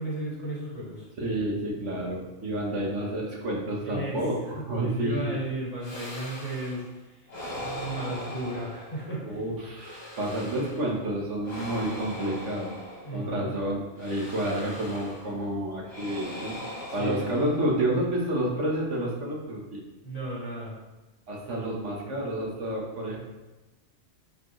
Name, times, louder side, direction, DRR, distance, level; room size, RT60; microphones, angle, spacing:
voice 1, 0.0-1.1 3.9-4.2 4.5-7.3 7.6-9.4 13.0-13.6 16.9-17.3 20.0-20.8, right 1 dB, 30° left, -7 dB, 2.5 m, -35 dB
voice 2, 1.2-5.4 7.7-7.8 9.3-12.7 13.1-16.6 16.9-19.8 21.3-23.2, right 1 dB, 85° right, -2 dB, 1.8 m, -29 dB
sound 1, 5.8-6.9 7.3-9.3 9.7-10.9 11.4-13.4 14.0-15.4 15.8-18.0, equal, 55° left, 1.8 m, -40 dB
10.5 x 4.6 x 3.2 m, 1.1 s
omnidirectional pair, 1.2 m